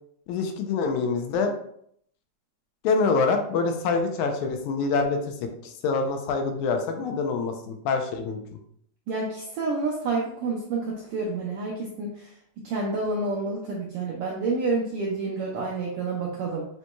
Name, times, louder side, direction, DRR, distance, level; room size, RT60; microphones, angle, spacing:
voice 1, 0.3-1.5 2.8-5.3 5.6-8.4, left 4 dB, 85° left, 5 dB, 2.0 m, -25 dB
voice 2, 9.1-12.3 12.6-16.7, right 3 dB, 80° right, -3 dB, 1.3 m, -29 dB
6.9 x 3.0 x 2.2 m, 0.68 s
omnidirectional pair, 3.4 m